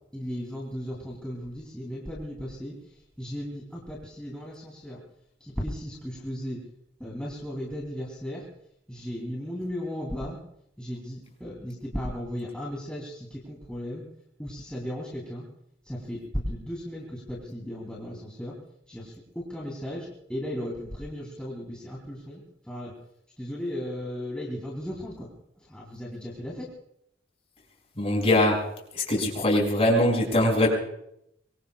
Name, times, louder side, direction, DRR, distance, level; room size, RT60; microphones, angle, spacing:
voice 1, 0.1-2.7 3.2-5.0 5.4-6.6 7.0-8.4 8.9-10.4 10.8-14.0 14.4-15.5 15.9-18.5 18.9-22.4 22.7-22.9 23.4-25.3 25.7-26.7, equal, 5° left, -4 dB, 3.2 m, -35 dB
voice 2, 28.0-28.7 28.9-30.7, left 1 dB, 35° left, 0 dB, 6.4 m, -22 dB
25.0 x 23.5 x 2.4 m, 0.75 s
head